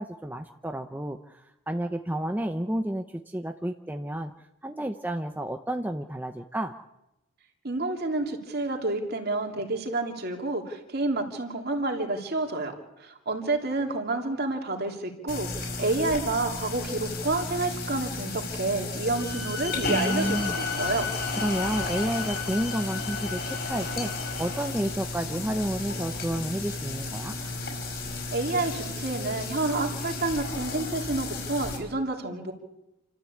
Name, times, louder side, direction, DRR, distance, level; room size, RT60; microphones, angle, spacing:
voice 1, 0.0-4.3 4.6-6.7 19.9-20.5 21.4-24.1 24.4-27.4, right 1 dB, 10° right, 6 dB, 0.7 m, -31 dB
voice 2, 7.6-21.1 28.3-32.5, right 2 dB, 45° right, 3 dB, 3.2 m, -29 dB
sound 1, 15.3-31.8, left 3 dB, 50° left, 5.7 m, -33 dB
Bowed string instrument, 19.1-24.6, left 7 dB, 85° left, 6.3 m, -36 dB
29.0 x 13.0 x 8.5 m, 0.94 s
head